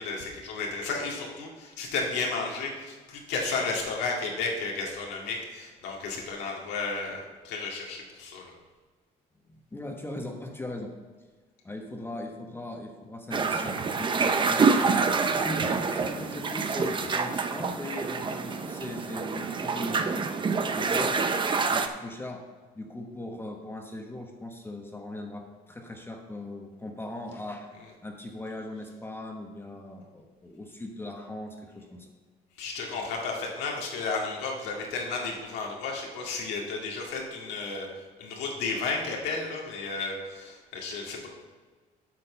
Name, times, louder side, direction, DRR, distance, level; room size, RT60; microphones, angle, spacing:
voice 1, 0.0-8.5 32.6-37.9 38.2-41.3, left 4 dB, 85° left, -1 dB, 2.2 m, -33 dB
voice 2, 9.4-10.9 11.6-15.0 15.4-21.2 21.7-22.4 22.7-27.7 28.0-32.1, left 1 dB, 15° left, 1 dB, 1.1 m, -39 dB
sound 1, 13.3-21.9, right 4 dB, 30° right, 0.6 m, -27 dB
8.5 x 6.3 x 5.7 m, 1.4 s
cardioid pair, 110°, 17 cm